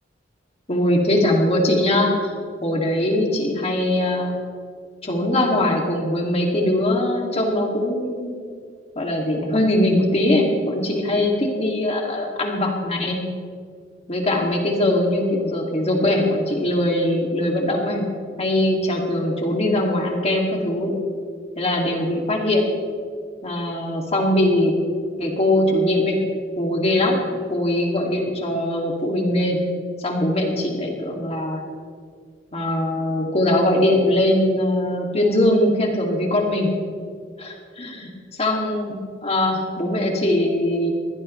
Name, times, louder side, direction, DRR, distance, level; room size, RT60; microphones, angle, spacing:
voice 1, 0.7-2.3 2.6-4.3 5.0-8.4 9.0-13.2 14.1-18.0 18.4-20.9 21.6-22.6 23.4-24.7 25.2-26.2 26.6-27.2 27.5-29.6 30.0-31.6 32.5-36.7 37.4-38.1 38.4-38.9 39.2-40.9, left 1 dB, 35° left, 0 dB, 2.5 m, -21 dB
23.5 x 16.5 x 3.3 m, 2.1 s
head